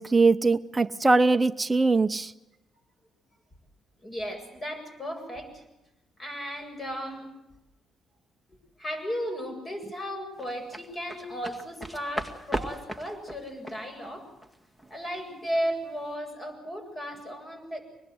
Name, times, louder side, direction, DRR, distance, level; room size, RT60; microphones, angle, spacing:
voice 1, 0.0-2.3, right 3 dB, 20° right, 7 dB, 0.9 m, -22 dB
voice 2, 4.0-5.6 6.2-7.3 8.8-14.3 14.9-17.8, equal, 30° left, 5 dB, 7.9 m, -35 dB
sound 1, 10.4-15.6 15.9-16.1, equal, 10° left, 2.2 m, -37 dB
25.0 x 21.0 x 8.0 m, 0.94 s
cardioid pair, 90°, 0 cm